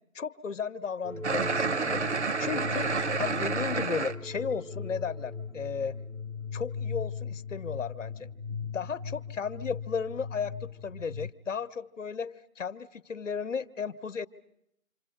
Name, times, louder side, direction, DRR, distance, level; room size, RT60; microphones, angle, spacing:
voice 1, 0.1-2.0 2.4-2.9 3.2-6.0 6.5-8.3 8.6-14.3, left 6 dB, 60° left, 16 dB, 1.0 m, -34 dB
sound 1, 1.0-11.3, left 4 dB, 90° right, 3.3 m, -38 dB
sound 2, 1.2-4.1, right 5 dB, 55° right, 0.9 m, -29 dB
28.0 x 26.5 x 6.5 m, 0.79 s
figure-of-eight pair, 165°, 42 cm